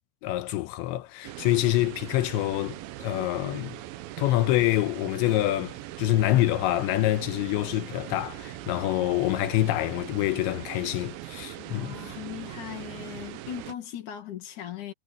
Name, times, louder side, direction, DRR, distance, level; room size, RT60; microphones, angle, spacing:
voice 1, 0.2-3.8 4.2-12.0, left 15 dB, 85° left, 3.1 m, -26 dB
sound 1, 1.2-13.8, right 15 dB, 80° right, 2.0 m, -40 dB
voice 2, 11.6-14.9, left 10 dB, 50° left, 3.0 m, -39 dB
omnidirectional pair, 5.3 m